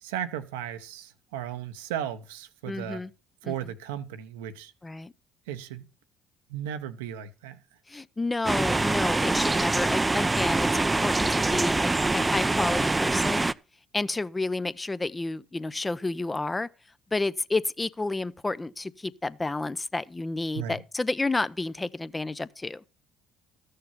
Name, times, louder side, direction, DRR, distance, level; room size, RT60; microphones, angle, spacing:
voice 1, 0.0-3.0 3.4-4.7 5.5-5.9 6.5-7.6 20.5-20.8, right 10 dB, 85° right, 0.9 m, -35 dB
voice 2, 2.7-3.1 3.4-3.5 4.8-5.1 7.9-13.5 13.9-16.7 17.1-22.8, left 2 dB, 20° left, 0.7 m, -30 dB
sound 1, 8.4-13.5, right 2 dB, 20° right, 0.5 m, -24 dB
13.5 x 6.6 x 5.8 m
hypercardioid pair, 55°, 0 cm